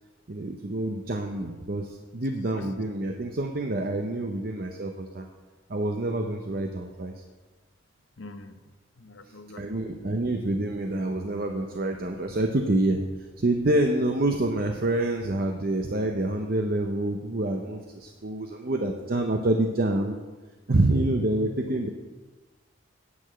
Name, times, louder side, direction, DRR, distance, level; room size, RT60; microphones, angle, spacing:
voice 1, 0.3-5.3 5.7-7.1 9.6-13.0 13.4-20.2 20.7-21.9, right 1 dB, 50° right, 4 dB, 0.7 m, -27 dB
voice 2, 8.2-8.6 9.0-10.1, left 2 dB, 70° left, 8 dB, 0.8 m, -45 dB
9.5 x 5.9 x 7.7 m, 1.3 s
head